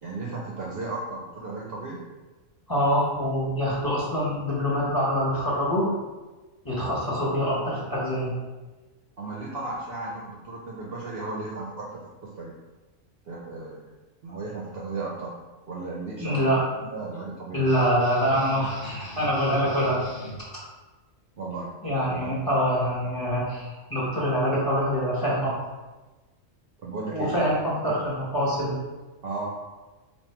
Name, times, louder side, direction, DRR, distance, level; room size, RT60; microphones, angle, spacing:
voice 1, 0.0-2.0 9.2-12.6 13.3-13.9 14.2-15.3 15.7-17.7 21.4-22.4 26.8-27.6 29.2-29.6, right 3 dB, 60° right, -4 dB, 0.7 m, -35 dB
voice 2, 2.7-5.9 6.6-8.3 16.2-16.6 17.5-20.0 21.8-25.5 27.1-28.7, equal, 15° left, -7 dB, 0.9 m, -25 dB
sound 1, 17.6-20.4, equal, 65° left, 1.3 m, -40 dB
3.6 x 2.4 x 4.3 m, 1.2 s
omnidirectional pair, 1.4 m